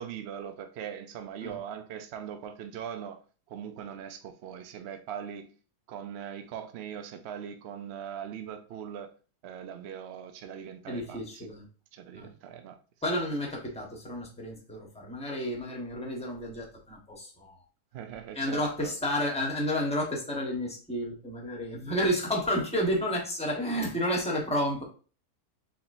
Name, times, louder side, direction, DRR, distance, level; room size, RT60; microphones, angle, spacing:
voice 1, 0.0-3.2 3.5-5.5 5.9-9.1 9.4-11.5 11.9-12.8 17.9-18.9 21.9-22.1, right 8 dB, 75° right, 0.6 m, -40 dB
voice 2, 10.9-11.7 12.1-12.3 13.0-17.6 18.3-24.8, equal, 5° left, 0.9 m, -31 dB
4.8 x 3.5 x 2.6 m
omnidirectional pair, 1.7 m